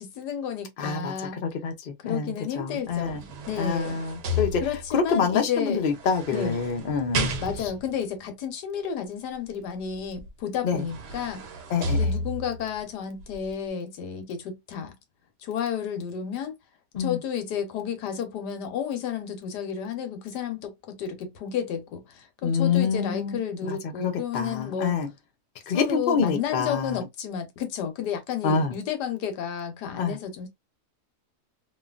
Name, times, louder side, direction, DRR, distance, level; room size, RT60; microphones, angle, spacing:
voice 1, 0.0-1.4 2.0-4.0 4.6-5.8 6.3-6.6 7.4-11.4 11.9-14.9 15.4-16.5 17.0-24.9 25.7-30.5, left 8 dB, 80° left, 1.4 m, -32 dB
voice 2, 0.8-1.1 1.4-3.2 3.6-4.6 4.9-7.3 7.6-7.7 10.6-10.8 11.7-12.0 16.9-17.2 22.4-25.1 25.7-27.0 28.4-28.7 30.0-30.2, left 5 dB, 60° left, 0.5 m, -26 dB
sound 1, 2.9-5.1 5.9-7.9 10.2-10.3 10.7-12.7 13.2-13.3, equal, 80° right, 1.3 m, -32 dB
3.0 x 2.2 x 2.4 m
omnidirectional pair, 1.8 m